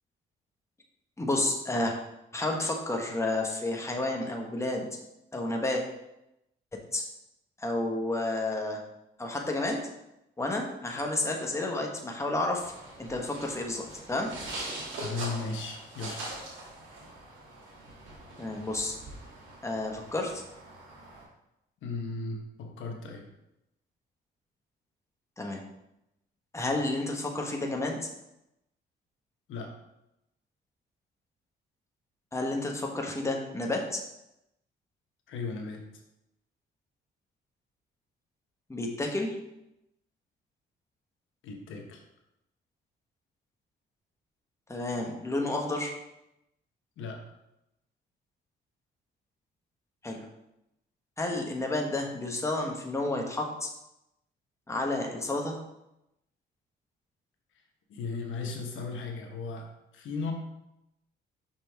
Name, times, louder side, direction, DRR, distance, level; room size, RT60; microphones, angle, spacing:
voice 1, 1.2-1.9 2.3-4.9 5.3-5.8 6.7-7.0 7.6-8.8 9.2-9.8 10.4-12.7 13.0-14.3 18.4-18.9 19.6-20.4 25.4-25.6 26.5-28.1 32.3-34.0 38.7-39.4 44.7-46.0 50.0-50.2 51.2-53.7 54.7-55.6, left 2 dB, 15° left, 1 dB, 1.2 m, -31 dB
sound 1, 12.6-21.2, right 2 dB, 80° right, 2.5 m, -43 dB
voice 2, 15.0-16.2 21.8-23.3 29.5-29.7 35.3-35.8 41.4-42.0 47.0-47.2 57.5-57.6 57.9-60.3, left 4 dB, 80° left, 3 dB, 1.1 m, -36 dB
5.9 x 5.7 x 3.5 m, 0.87 s
cardioid pair, 90°, 20 cm